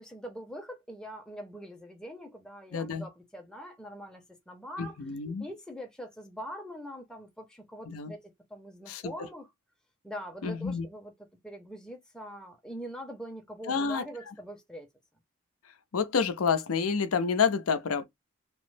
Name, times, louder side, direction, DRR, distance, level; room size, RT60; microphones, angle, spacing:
voice 1, 0.0-5.0 5.4-9.5 10.0-14.9, equal, 5° left, 0.6 m, -43 dB
voice 2, 2.7-3.1 4.8-5.4 7.9-8.1 8.9-9.3 10.4-10.9 13.7-14.3 15.9-18.1, left 5 dB, 85° left, 0.5 m, -29 dB
3.0 x 2.0 x 3.1 m
head